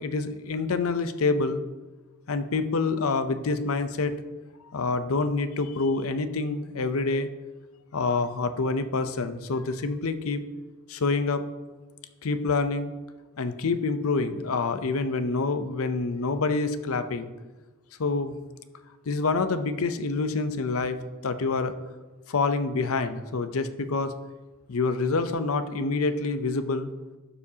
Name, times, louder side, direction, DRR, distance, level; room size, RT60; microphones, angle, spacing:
voice 1, 0.0-1.6 2.3-4.1 4.7-7.3 7.9-10.4 10.9-11.4 12.2-12.9 13.4-17.3 18.0-18.4 19.1-21.0 21.2-21.7 22.3-24.1 24.7-26.9, left 3 dB, 85° left, 11 dB, 0.6 m, -27 dB
11.5 x 7.0 x 2.8 m, 1.2 s
head